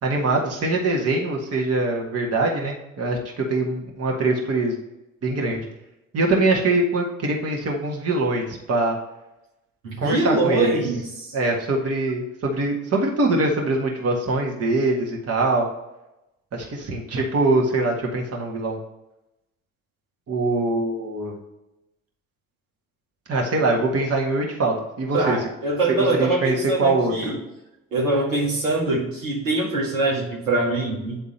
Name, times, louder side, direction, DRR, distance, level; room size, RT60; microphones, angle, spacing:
voice 1, 0.0-4.8 5.2-5.7 6.1-9.0 10.0-10.8 11.3-15.7 16.5-18.8 20.3-21.3 23.3-25.4 25.9-27.3, right 2 dB, 35° right, 0 dB, 1.7 m, -23 dB
voice 2, 9.8-11.0 25.1-27.4 27.9-31.2, right 2 dB, 80° right, -4 dB, 1.9 m, -23 dB
9.1 x 3.6 x 4.3 m, 0.92 s
hypercardioid pair, 60°, 40 cm